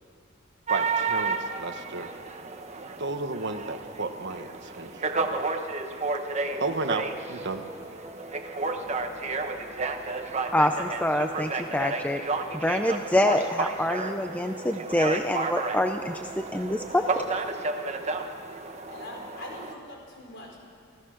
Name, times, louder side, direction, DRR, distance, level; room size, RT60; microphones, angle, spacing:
sound 1, 0.7-19.7, right 3 dB, 30° right, 1.2 m, -32 dB
voice 1, 0.7-2.1 3.0-5.4 6.6-7.6, right 3 dB, 55° right, 8 dB, 1.2 m, -33 dB
sound 2, 6.4-17.4, right 1 dB, 15° right, 2.5 m, -45 dB
voice 2, 10.5-12.2 12.5-17.0, left 1 dB, 5° left, 6 dB, 0.6 m, -26 dB
voice 3, 16.9-17.4 17.6-18.2 18.9-20.6, left 2 dB, 55° left, 0 dB, 4.7 m, -44 dB
28.5 x 16.0 x 6.4 m, 2.3 s
head